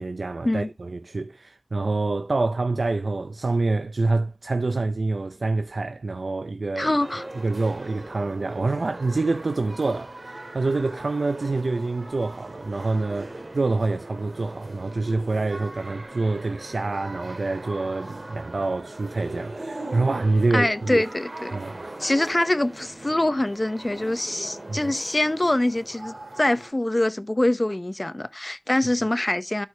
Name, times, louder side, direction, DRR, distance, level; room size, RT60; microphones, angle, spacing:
voice 1, 0.0-6.9 7.4-21.0 21.5-22.1 24.7-24.8, right 3 dB, 85° right, 0.5 m, -26 dB
voice 2, 6.8-7.2 20.5-21.6 22.0-29.7, left 1 dB, 30° left, 0.7 m, -24 dB
sound 1, 7.0-26.7, right 2 dB, 65° right, 2.2 m, -40 dB
12.0 x 4.8 x 3.3 m
wide cardioid pair, 55°, 0 cm